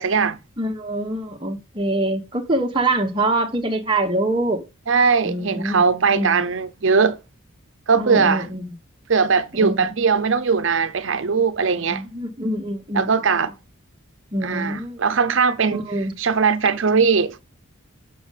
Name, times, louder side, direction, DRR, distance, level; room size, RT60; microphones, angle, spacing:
voice 1, 0.0-0.4 4.9-7.2 7.9-8.5 9.1-12.0 12.9-13.5 14.4-15.9 16.2-17.4, right 5 dB, 65° right, 0.7 m, -20 dB
voice 2, 0.6-4.6 5.2-5.8 6.1-6.4 7.9-8.7 9.5-9.9 11.7-13.1 14.3-15.0 15.7-16.1, right 1 dB, 25° right, 1.2 m, -24 dB
7.0 x 6.2 x 4.0 m
head